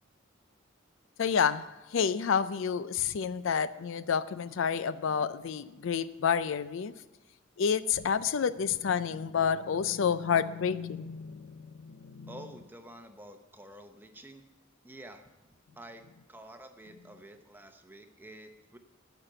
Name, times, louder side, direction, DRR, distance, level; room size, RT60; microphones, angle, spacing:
voice 1, 1.2-1.7 1.9-6.9 7.6-12.3, left 7 dB, 70° left, 15 dB, 0.4 m, -29 dB
voice 2, 12.3-14.5 14.8-15.3 15.8-18.8, right 1 dB, 10° right, 6 dB, 0.8 m, -49 dB
11.5 x 5.8 x 7.8 m, 1.1 s
head